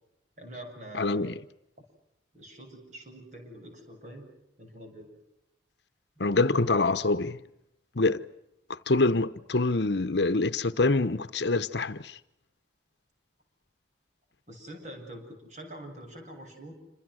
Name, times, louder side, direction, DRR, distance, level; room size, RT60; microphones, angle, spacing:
voice 1, 0.4-1.3 1.8-1.9 2.3-4.3 4.6-5.1 14.5-16.7, right 1 dB, 40° right, 7.8 m, -45 dB
voice 2, 0.9-1.3 6.2-7.4 8.0-8.2 8.7-12.2, left 3 dB, 70° left, 0.9 m, -25 dB
28.0 x 26.5 x 6.4 m
head